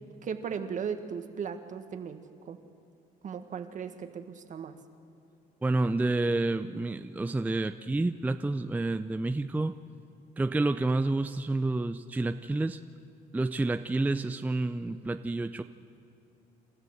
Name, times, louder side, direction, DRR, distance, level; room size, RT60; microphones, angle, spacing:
voice 1, 0.2-2.6 3.2-4.7, right 7 dB, 50° right, 8 dB, 1.6 m, -37 dB
voice 2, 5.6-9.8 10.4-12.8 13.3-15.6, right 2 dB, 10° right, 10 dB, 0.5 m, -29 dB
28.0 x 13.5 x 7.9 m, 2.7 s
cardioid pair, 110°, 17 cm